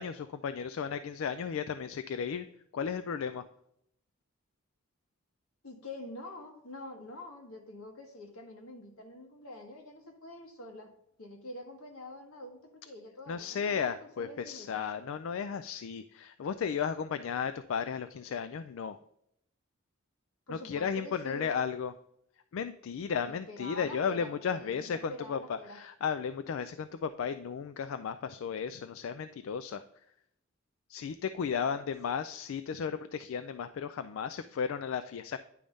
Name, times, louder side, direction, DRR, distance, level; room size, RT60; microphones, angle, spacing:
voice 1, 0.0-2.5 2.7-3.4 13.3-19.0 20.5-21.9 22.5-29.8 30.9-35.4, left 6 dB, 65° left, 11 dB, 0.3 m, -34 dB
voice 2, 5.6-10.9 11.2-14.8 20.5-21.6 23.3-25.8 31.6-31.9, left 1 dB, 85° left, 2 dB, 1.5 m, -46 dB
10.0 x 3.5 x 5.2 m, 0.75 s
head